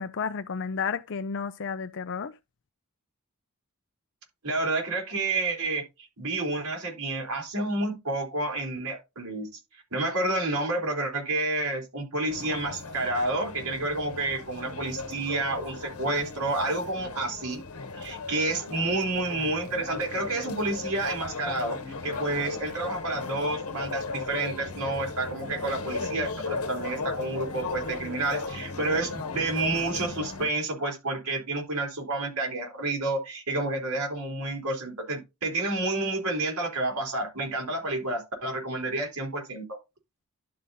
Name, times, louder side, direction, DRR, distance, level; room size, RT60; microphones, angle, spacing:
voice 1, 0.0-2.3, left 6 dB, 60° left, 0.6 m, -32 dB
voice 2, 4.4-5.8 6.2-9.5 9.9-17.6 18.0-39.8, right 2 dB, 90° right, 3.5 m, -29 dB
sound 1, 12.3-30.5, left 4 dB, 85° left, 1.1 m, -36 dB
11.5 x 3.9 x 4.0 m
head